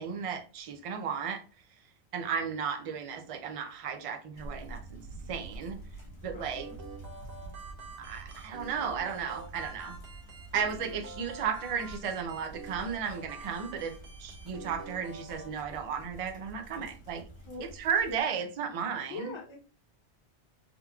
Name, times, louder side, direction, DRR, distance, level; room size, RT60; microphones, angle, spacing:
voice 1, 0.0-1.4 2.1-5.0 5.3-5.8 6.2-6.7 8.0-10.0 10.5-13.9 14.2-17.2 17.8-19.3, right 6 dB, 50° right, 6 dB, 0.4 m, -34 dB
sound 1, 4.3-18.2, right 2 dB, 70° left, 1.4 m, -48 dB
voice 2, 6.2-6.8 12.0-12.4 17.4-17.6 19.0-19.6, left 3 dB, 30° left, -2 dB, 0.8 m, -44 dB
sound 2, 6.4-15.5, right 2 dB, 70° right, 1.1 m, -47 dB
3.7 x 2.9 x 2.3 m, 0.37 s
omnidirectional pair, 1.2 m